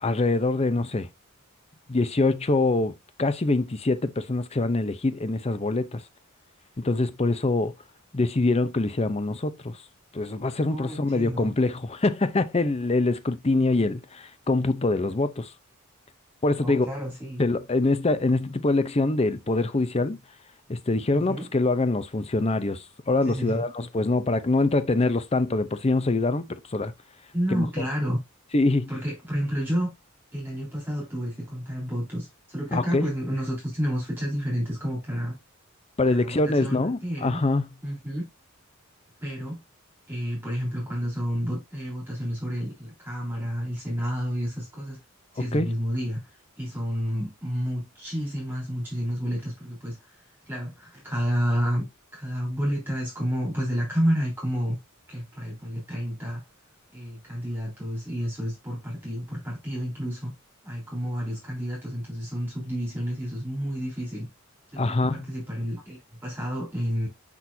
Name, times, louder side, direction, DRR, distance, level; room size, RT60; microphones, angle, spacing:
voice 1, 0.0-1.1 1.9-6.0 6.8-7.7 8.1-9.8 10.1-15.5 16.4-16.9 17.4-20.2 20.7-26.9 27.5-27.7 28.5-28.9 32.7-33.0 36.0-37.7 45.5-45.7 64.8-65.3, left 2 dB, 30° left, 0.6 m, -24 dB
voice 2, 10.7-11.5 16.6-17.4 21.1-21.5 23.2-23.6 27.3-28.2 28.9-29.9 30.3-35.4 36.1-37.4 37.8-38.2 39.2-39.6 40.1-45.0 45.3-46.2 46.6-50.2 50.5-51.9 52.1-54.8 55.1-56.4 56.9-60.3 60.6-64.3 64.7-67.1, equal, 10° right, 3.8 m, -30 dB
6.1 x 6.1 x 2.7 m
head